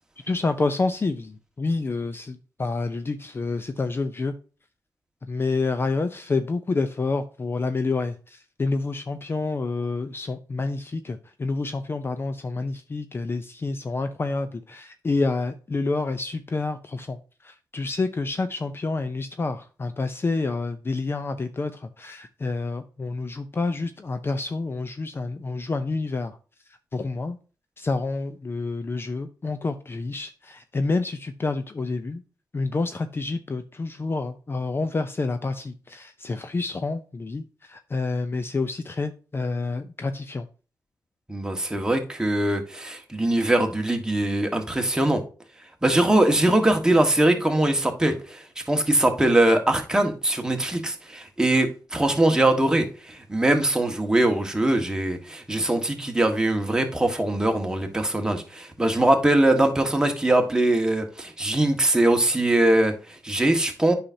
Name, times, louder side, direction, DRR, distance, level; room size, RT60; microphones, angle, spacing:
voice 1, 0.2-4.3 5.3-26.4 26.9-27.4 27.8-32.2 32.5-40.5, left 3 dB, 30° left, 0.6 m, -28 dB
voice 2, 41.3-45.2 45.8-63.9, right 1 dB, 10° right, 1.5 m, -22 dB
8.6 x 5.7 x 2.7 m
cardioid pair, 75°, 7 cm